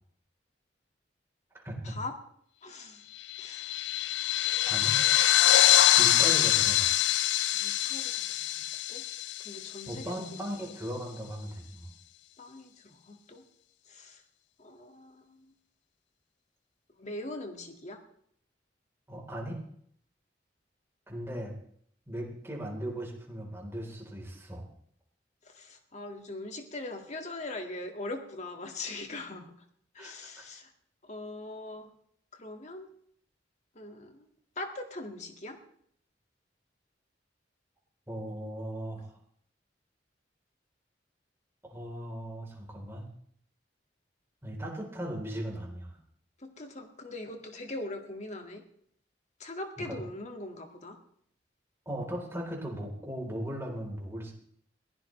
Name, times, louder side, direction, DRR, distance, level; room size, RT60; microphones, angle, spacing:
voice 1, 1.6-2.0 4.7-5.0 6.0-6.9 9.9-11.9 19.1-19.6 21.1-21.5 22.1-24.7 30.0-30.5 38.1-39.1 41.6-43.1 44.4-45.9 49.8-50.0 51.9-54.3, right 1 dB, 15° right, -1 dB, 4.0 m, -38 dB
voice 2, 2.6-3.0 3.4-3.8 7.5-8.1 8.9-9.0 9.4-10.1 10.8-11.0 12.4-13.4 13.9-14.2 14.6-15.5 17.0-18.0 25.5-29.5 29.9-30.7 31.1-31.9 32.3-32.9 33.8-34.2 34.6-35.6 46.4-48.6 49.4-51.0, left 2 dB, 40° left, 4 dB, 2.1 m, -41 dB
sound 1, 3.3-10.1, left 13 dB, 80° left, 0.5 m, -25 dB
22.0 x 16.0 x 3.3 m, 0.66 s
head